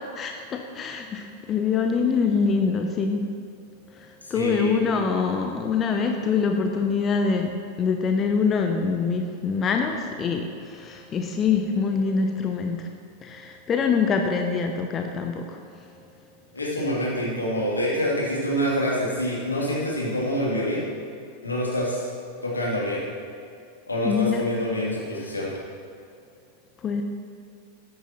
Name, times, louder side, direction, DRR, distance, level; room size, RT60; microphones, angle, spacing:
voice 1, 0.0-3.3 3.9-12.9 13.2-15.9 24.0-24.4 26.8-27.0, left 5 dB, 25° left, 4 dB, 0.7 m, -25 dB
voice 2, 4.2-4.8 16.5-20.8 21.4-22.1 22.4-23.0 23.9-25.5, equal, 80° left, -5 dB, 2.8 m, -26 dB
14.0 x 9.5 x 3.0 m, 2.5 s
figure-of-eight pair, 90°, 0 cm